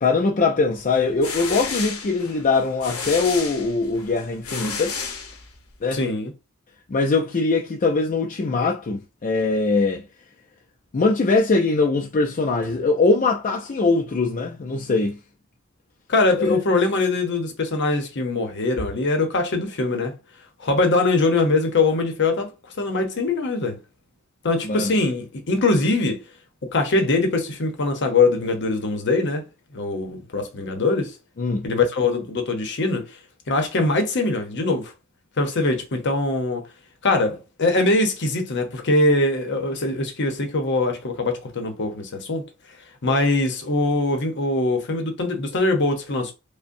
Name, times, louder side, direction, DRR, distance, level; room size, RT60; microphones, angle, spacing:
voice 1, 0.0-4.9 5.8-6.0 6.9-10.0 10.9-15.2 16.3-16.6 24.6-24.9 31.4-31.7, left 3 dB, 35° left, 0.4 m, -22 dB
sound 1, 0.9-5.8, left 5 dB, 90° left, 1.0 m, -32 dB
voice 2, 5.9-6.3 16.1-20.2 20.6-23.8 24.4-26.2 26.6-29.4 29.7-31.1 31.6-33.1 33.5-34.9 35.4-36.7 37.0-42.4 43.0-46.3, left 2 dB, 55° left, 0.8 m, -22 dB
5.1 x 2.1 x 2.6 m
head